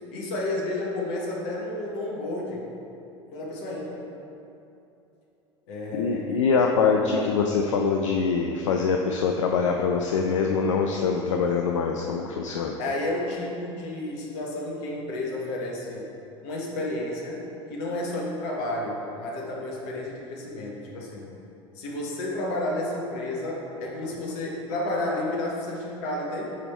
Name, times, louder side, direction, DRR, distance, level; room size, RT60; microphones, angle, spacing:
voice 1, 0.1-2.7 3.3-4.1 5.7-7.3 12.8-16.1 16.4-17.4 17.7-21.3 21.7-26.6, left 1 dB, 60° left, -2 dB, 1.5 m, -31 dB
voice 2, 5.9-12.8, left 5 dB, 80° left, 2 dB, 0.4 m, -24 dB
8.3 x 3.6 x 4.4 m, 2.8 s
hypercardioid pair, 75°, 16 cm